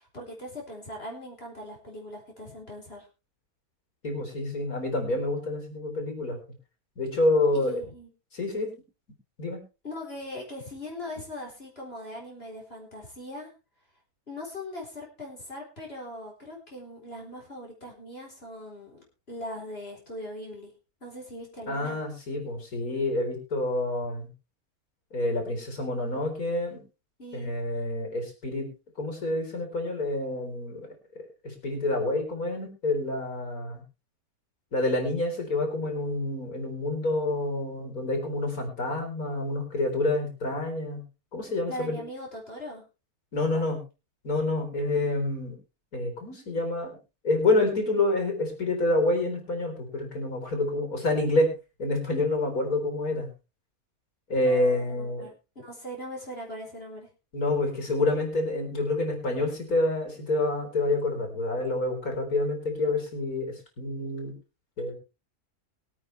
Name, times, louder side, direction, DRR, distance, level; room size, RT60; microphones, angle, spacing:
voice 1, 0.0-3.1 7.5-8.1 9.8-13.5 14.3-19.0 19.3-20.7 21.0-22.0 27.2-27.5 41.7-42.8 43.5-43.6 54.4-57.1, left 1 dB, 40° left, -1 dB, 4.4 m, -40 dB
voice 2, 4.0-6.4 7.0-7.8 8.3-8.7 9.4-9.6 21.7-24.3 25.1-26.8 27.3-28.7 29.0-30.9 31.4-33.8 34.7-41.0 41.3-42.0 43.3-43.8 44.2-45.6 45.9-47.0 47.2-51.5 51.8-53.3 54.3-55.3 57.3-64.3 64.8-64.9, left 2 dB, 75° left, 3 dB, 4.8 m, -28 dB
23.5 x 8.9 x 3.3 m, 0.30 s
omnidirectional pair, 1.6 m